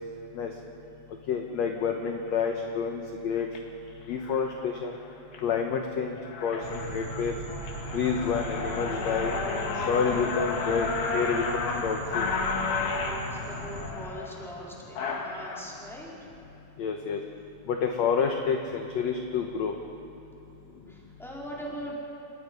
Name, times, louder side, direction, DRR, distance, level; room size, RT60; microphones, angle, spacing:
voice 1, 1.3-3.5 4.1-4.9 5.4-6.2 6.4-7.3 7.9-9.3 9.9-10.9 11.1-12.2 16.8-17.2 17.7-19.7, left 6 dB, 65° left, 3 dB, 2.0 m, -28 dB
sound 1, 3.4-3.6 4.2-4.5 5.0-5.4 5.8-5.9 6.2-15.6, left 4 dB, 80° left, 3.6 m, -32 dB
sound 2, 6.6-13.9, right 2 dB, 40° right, 3.5 m, -39 dB
voice 2, 13.0-16.1 20.4-22.0, equal, ahead, -5 dB, 3.9 m, -42 dB
28.5 x 19.5 x 5.4 m, 2.9 s
omnidirectional pair, 4.1 m